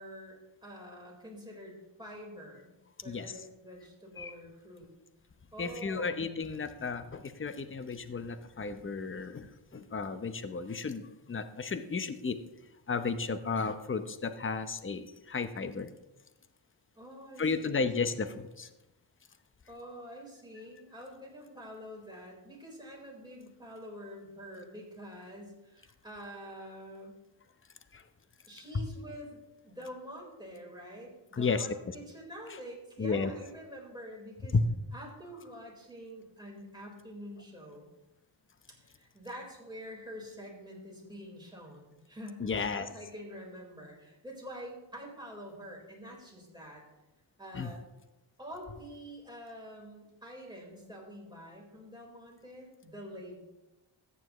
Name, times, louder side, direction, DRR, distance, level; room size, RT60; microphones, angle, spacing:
voice 1, 0.0-2.7 3.0-4.9 5.5-6.1 17.0-17.9 19.7-27.2 28.5-34.6 34.9-37.9 38.7-46.8 47.4-47.8 48.4-53.4, equal, 10° right, -2 dB, 4.2 m, -46 dB
voice 2, 5.6-11.0 11.3-12.4 12.9-15.9 17.4-18.7 27.9-28.0 28.7-28.8 31.3-31.9 33.0-33.3 34.5-34.6 42.4-42.9 47.5-47.7, left 4 dB, 25° left, 10 dB, 0.8 m, -33 dB
14.0 x 9.6 x 3.1 m, 1.0 s
cardioid pair, 70°, 48 cm